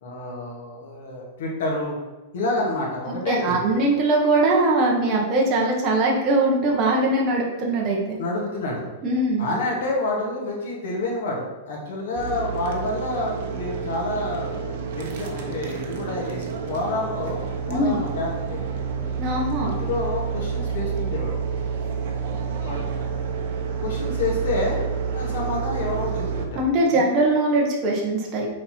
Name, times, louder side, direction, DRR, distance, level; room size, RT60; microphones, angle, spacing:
voice 1, 0.0-2.0 2.3-3.6 8.2-8.8 9.4-18.6 19.6-21.3 22.6-22.9 23.8-24.8 25.1-26.6 26.9-27.1, left 2 dB, 65° left, -2 dB, 2.1 m, -28 dB
voice 2, 3.3-8.2 9.0-9.5 17.7-18.0 19.2-19.7 26.5-28.5, right 2 dB, 25° right, -2 dB, 1.2 m, -21 dB
sound 1, 12.2-26.4, right 6 dB, 55° right, 1.0 m, -29 dB
6.4 x 4.3 x 4.4 m, 1.1 s
supercardioid pair, 170°, 0 cm